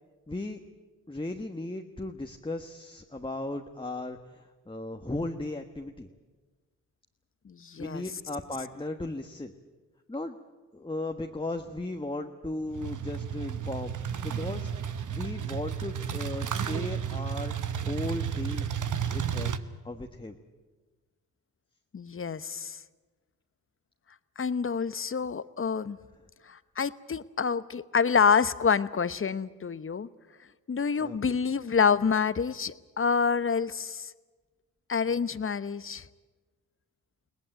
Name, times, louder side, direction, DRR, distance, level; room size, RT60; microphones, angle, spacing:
voice 1, 0.3-0.6 1.1-6.1 7.8-9.5 10.1-10.4 10.7-13.9 14.2-14.7 15.1-17.5 17.8-18.7 19.1-19.5 19.8-20.4 31.0-31.4, left 2 dB, 15° left, 4 dB, 1.5 m, -36 dB
voice 2, 7.5-8.0 21.9-22.8 24.4-26.0 26.5-30.1 30.7-34.1 34.9-36.0, left 6 dB, 35° left, 15 dB, 1.0 m, -27 dB
sound 1, 12.7-19.6, right 8 dB, 50° right, 1.2 m, -32 dB
22.0 x 18.0 x 9.1 m, 1.3 s
hypercardioid pair, 40°, 38 cm